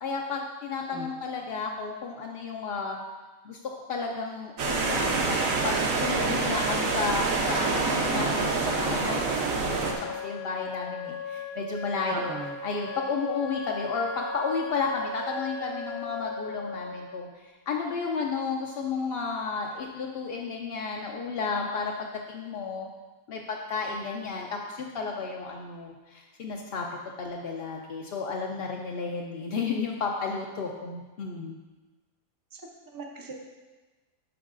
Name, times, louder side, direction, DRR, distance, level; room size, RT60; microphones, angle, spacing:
voice 1, 0.0-3.0 3.4-3.6 3.9-9.3 9.7-12.3 12.6-22.9 23.3-26.9 27.2-31.6, left 4 dB, 60° left, 0 dB, 0.6 m, -32 dB
sound 1, 4.6-9.9, right 3 dB, 70° right, 1.2 m, -26 dB
Wind instrument woodwind instrument, 9.5-17.2, left 3 dB, 80° left, 1.1 m, -37 dB
voice 2, 12.1-12.5 32.5-32.7 32.9-33.3, right 3 dB, 30° right, 1 dB, 0.4 m, -37 dB
9.2 x 6.2 x 2.5 m, 1.2 s
omnidirectional pair, 1.5 m